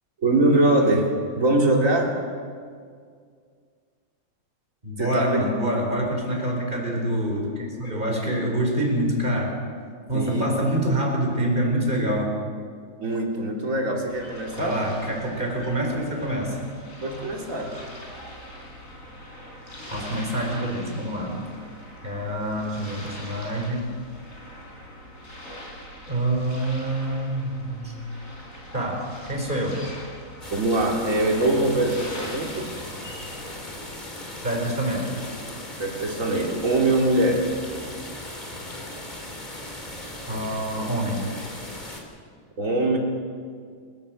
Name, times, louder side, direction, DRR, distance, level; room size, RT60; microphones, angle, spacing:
voice 1, 0.2-2.1 5.0-5.4 10.1-10.5 13.0-14.8 17.0-17.7 30.5-32.7 35.8-37.4 42.6-43.0, right 2 dB, 40° right, 0 dB, 3.3 m, -22 dB
voice 2, 4.8-9.6 10.1-12.3 14.6-16.6 19.9-21.4 22.0-23.9 26.1-28.1 28.7-29.8 34.4-35.1 40.3-41.3, right 1 dB, 25° right, 0 dB, 4.7 m, -26 dB
sound 1, 14.1-33.6, equal, 40° left, 4.7 m, -42 dB
sound 2, 30.4-42.0, left 1 dB, 20° left, 3.2 m, -38 dB
29.5 x 12.5 x 7.7 m, 2.1 s
omnidirectional pair, 2.2 m